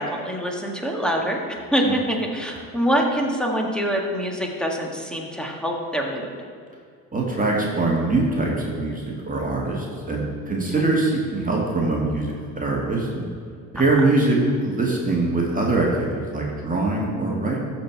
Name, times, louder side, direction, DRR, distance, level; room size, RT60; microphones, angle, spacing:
voice 1, 0.0-6.3 13.7-14.0, equal, ahead, 0 dB, 1.6 m, -25 dB
voice 2, 7.1-13.3 13.7-17.6, right 2 dB, 20° right, -3 dB, 1.9 m, -23 dB
13.5 x 4.6 x 4.6 m, 2.2 s
hypercardioid pair, 65°, 42 cm